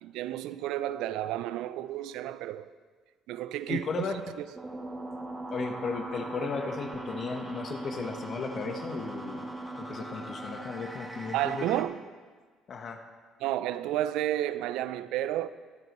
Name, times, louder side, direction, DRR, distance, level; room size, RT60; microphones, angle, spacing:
voice 1, 0.0-2.7 3.3-4.4 11.3-12.0 13.4-15.5, right 13 dB, 80° right, 0.5 m, -31 dB
voice 2, 3.7-4.2 5.5-11.7 12.7-13.0, left 5 dB, 50° left, 1.2 m, -35 dB
sound 1, 4.5-11.8, right 2 dB, 15° right, 2.2 m, -39 dB
22.5 x 9.2 x 3.1 m
supercardioid pair, 70°, 0 cm